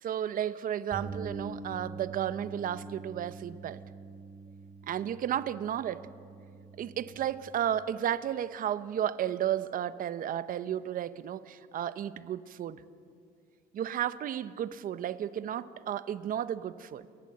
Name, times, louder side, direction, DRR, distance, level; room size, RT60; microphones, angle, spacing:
voice 1, 0.0-3.8 4.9-6.1 6.8-12.8 13.7-17.1, right 10 dB, 55° right, 15 dB, 0.9 m, -33 dB
Bass guitar, 0.9-7.2, right 3 dB, 30° right, 7.5 m, -44 dB
29.0 x 14.0 x 7.7 m, 2.3 s
cardioid pair, 110°, 17 cm